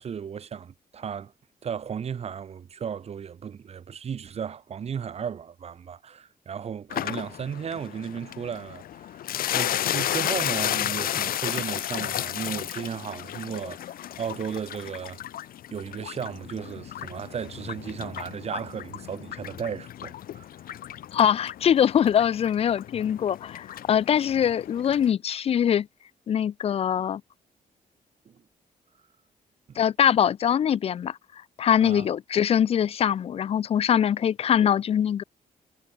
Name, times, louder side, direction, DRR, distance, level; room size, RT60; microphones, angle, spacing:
voice 1, 0.0-1.3 1.6-9.2 9.5-15.2 15.7-20.5 28.3-28.4 31.8-32.1, right 7 dB, 45° right, 1.8 m, -35 dB
sound 1, 6.9-25.1, left 12 dB, 75° left, 0.9 m, -33 dB
voice 2, 21.1-25.9 26.3-27.2 29.8-31.2 31.6-35.2, left 9 dB, 40° left, 0.5 m, -23 dB
wide cardioid pair, 160°, 15 cm